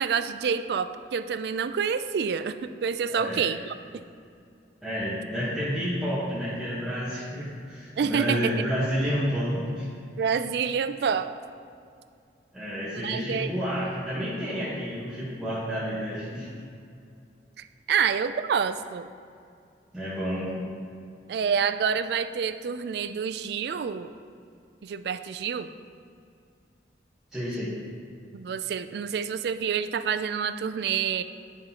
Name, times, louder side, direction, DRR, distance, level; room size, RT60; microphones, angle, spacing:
voice 1, 0.0-3.8 8.0-8.5 10.2-11.3 12.9-13.5 17.6-19.1 21.3-24.1 24.8-25.7 28.3-31.2, right 7 dB, 65° right, 11 dB, 0.3 m, -28 dB
voice 2, 3.1-3.5 4.8-9.9 12.5-16.5 19.9-20.6 27.3-27.7, equal, ahead, -12 dB, 1.2 m, -30 dB
10.0 x 5.5 x 2.9 m, 2.4 s
head